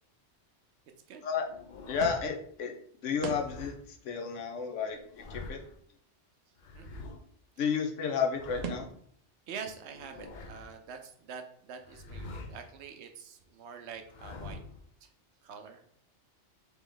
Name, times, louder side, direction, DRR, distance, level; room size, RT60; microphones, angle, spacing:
sound 1, 1.4-2.3 3.2-3.8 4.9-5.8 6.6-7.2 8.1-9.0 9.8-10.8 11.8-12.7 13.9-14.8, left 2 dB, 50° left, 0.6 m, -46 dB
voice 1, 1.9-2.7 3.0-5.0 5.3-5.6 7.6-8.9, left 6 dB, 80° left, 4 dB, 1.0 m, -32 dB
sound 2, 2.0-2.5 3.2-3.7 4.1-4.2 4.4-4.5 4.8-5.8 7.7-7.8 8.0-8.1 8.6-9.1, right 5 dB, 90° right, 0.3 m, -42 dB
voice 2, 9.5-14.6 15.0-15.1 15.4-15.8, right 6 dB, 70° right, 5 dB, 0.8 m, -45 dB
3.4 x 3.0 x 3.7 m, 0.63 s
omnidirectional pair, 1.2 m